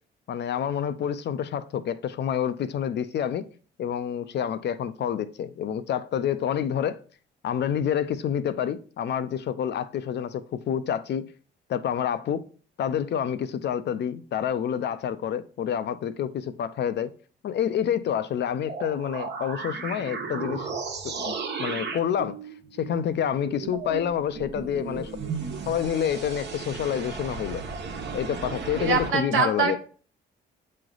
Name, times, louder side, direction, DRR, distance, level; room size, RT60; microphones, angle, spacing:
voice 1, 0.3-3.5 3.8-7.0 7.4-11.2 11.7-12.4 12.8-17.1 17.4-20.7 21.0-22.4 22.8-25.1 25.7-27.6 28.1-29.8, left 9 dB, 60° left, 0.6 m, -28 dB
sound 1, 18.6-29.1, right 5 dB, 60° right, 1.2 m, -35 dB
voice 2, 28.8-29.8, right 5 dB, 80° right, 1.2 m, -24 dB
7.6 x 3.2 x 3.9 m
cardioid pair, 90°, 20 cm